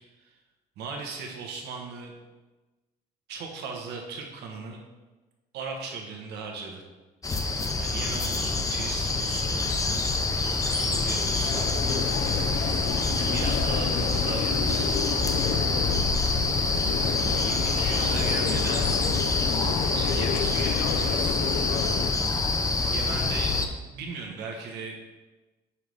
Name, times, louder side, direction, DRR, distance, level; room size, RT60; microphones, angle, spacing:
voice 1, 0.8-2.1 3.3-4.8 5.5-6.8 7.8-9.5 10.7-11.6 13.2-15.0 17.2-18.9 19.9-21.6 22.9-23.6 23.9-24.9, right 4 dB, 80° right, 1 dB, 1.1 m, -37 dB
sound 1, 7.2-23.7, left 3 dB, 20° left, 0.5 m, -26 dB
sound 2, 11.1-22.1, left 8 dB, 90° left, 0.4 m, -31 dB
5.7 x 3.2 x 5.3 m, 1.2 s
cardioid pair, 110°, 17 cm